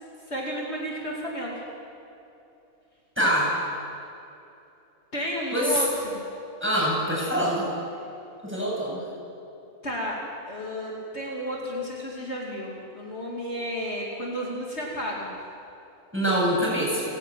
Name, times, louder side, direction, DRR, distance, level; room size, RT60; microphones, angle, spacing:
voice 1, 0.3-1.6 5.1-6.2 9.8-10.2 10.5-15.3, equal, 45° left, -3 dB, 2.9 m, -32 dB
voice 2, 3.2-3.5 5.5-5.8 6.6-7.7 8.4-9.0 16.1-17.0, equal, 10° right, -5 dB, 7.5 m, -24 dB
30.0 x 11.0 x 9.2 m, 2.8 s
omnidirectional pair, 1.5 m